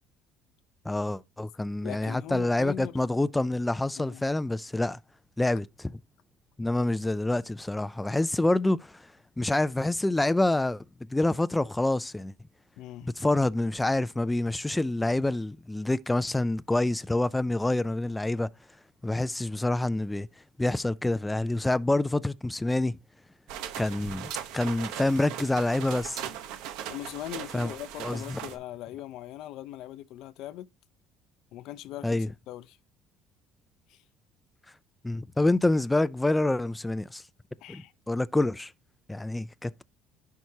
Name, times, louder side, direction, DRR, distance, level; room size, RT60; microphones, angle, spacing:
voice 1, 0.9-5.0 5.4-5.9 6.6-9.1 9.4-10.8 11.1-12.3 13.0-18.5 19.0-20.3 20.6-23.0 23.8-26.2 27.5-27.7 28.0-28.4 32.0-32.3 35.0-37.2 37.7-37.8 38.1-38.7 39.1-39.8, left 2 dB, 10° left, 0.3 m, -27 dB
voice 2, 1.8-3.0 4.0-4.2 12.8-13.1 26.9-30.7 31.5-32.8 33.9-34.0 37.6-37.9, left 13 dB, 70° left, 0.5 m, -40 dB
sound 1, 23.5-28.6, right 10 dB, 80° right, 0.9 m, -39 dB
10.5 x 4.6 x 2.7 m
cardioid pair, 110°, 0 cm